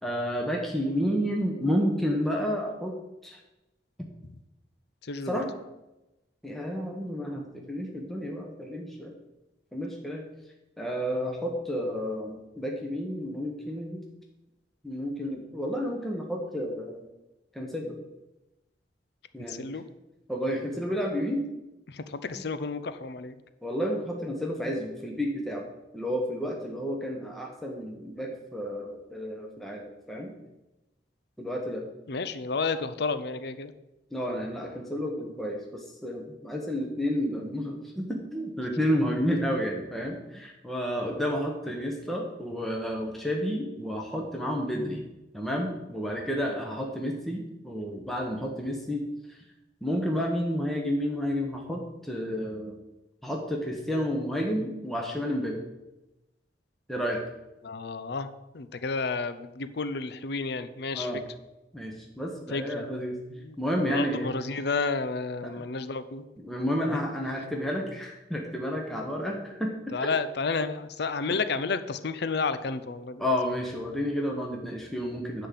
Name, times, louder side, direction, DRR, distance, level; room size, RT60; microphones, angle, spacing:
voice 1, 0.0-3.0 3.2-3.4 5.2-5.5 6.4-9.1 9.7-10.3 10.8-14.0 14.8-17.1 17.5-18.0 19.3-19.7 20.3-21.5 22.4-22.5 23.6-25.7 25.9-30.3 31.4-31.8 34.1-45.1 45.3-49.4 49.8-52.8 53.2-55.6 56.9-57.2 60.9-61.2 61.7-63.2 63.6-64.3 65.4-65.6 66.4-70.1 73.2-75.5, equal, ahead, 0 dB, 1.0 m, -31 dB
voice 2, 5.1-5.4 19.5-19.8 21.9-23.3 32.1-33.7 57.6-58.3 58.5-61.1 62.5-62.9 63.3-66.2 66.9-67.0 69.9-73.2, left 4 dB, 65° left, 12 dB, 0.6 m, -31 dB
10.5 x 3.8 x 7.4 m, 0.98 s
head